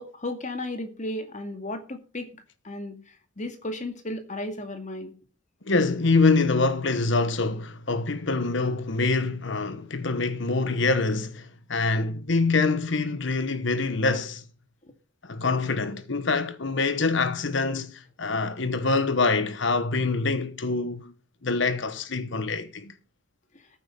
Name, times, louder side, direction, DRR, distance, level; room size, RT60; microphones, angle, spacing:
voice 1, 0.0-3.0 3.4-5.1, left 1 dB, 40° left, 2.2 m, -34 dB
voice 2, 5.7-14.4 15.2-21.1 21.4-22.9, left 3 dB, 65° left, 1.1 m, -25 dB
14.5 x 8.8 x 5.3 m
head